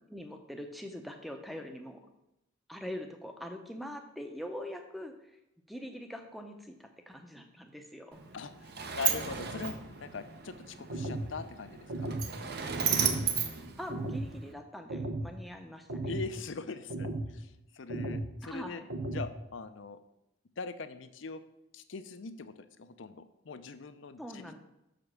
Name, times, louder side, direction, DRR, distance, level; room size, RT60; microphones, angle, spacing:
voice 1, 0.1-2.0 2.7-5.1 5.7-8.3 13.8-16.1 18.4-18.9 24.2-24.6, equal, ahead, 5 dB, 0.6 m, -43 dB
Sliding door, 8.1-14.5, right 7 dB, 50° right, 0.7 m, -34 dB
voice 2, 8.3-9.7 10.0-12.1 16.1-18.8 19.1-20.0 20.6-21.4 21.7-24.6, left 4 dB, 70° left, 11 dB, 0.6 m, -42 dB
sound 1, 10.9-11.3 11.9-12.3 12.9-13.3 13.9-14.3 14.9-15.3 15.9-16.3 16.9-17.3 17.9-18.3 18.9-19.3, right 2 dB, 85° right, 0.9 m, -35 dB
6.5 x 5.1 x 6.0 m, 0.87 s
head